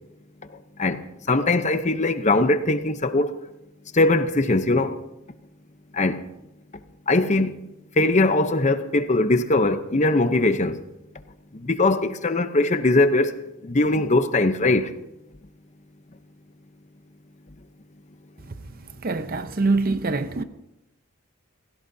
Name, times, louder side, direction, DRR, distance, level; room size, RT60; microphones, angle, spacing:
voice 1, 0.8-3.4 3.9-5.0 5.9-6.2 7.1-7.6 8.0-10.8 11.6-14.9, left 2 dB, 35° left, 0.8 m, -21 dB
voice 2, 19.0-20.4, right 3 dB, 45° right, 0.7 m, -24 dB
29.5 x 16.5 x 2.8 m
head